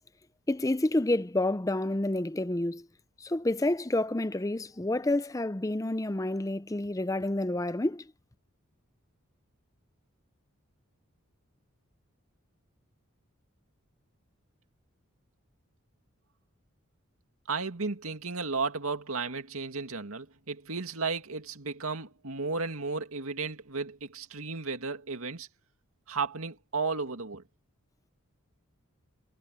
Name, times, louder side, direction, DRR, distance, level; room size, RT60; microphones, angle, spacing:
voice 1, 0.5-2.9 3.2-8.0, left 1 dB, 15° left, 0.5 m, -29 dB
voice 2, 17.5-25.5 26.1-27.4, right 4 dB, 85° right, 2.3 m, -34 dB
head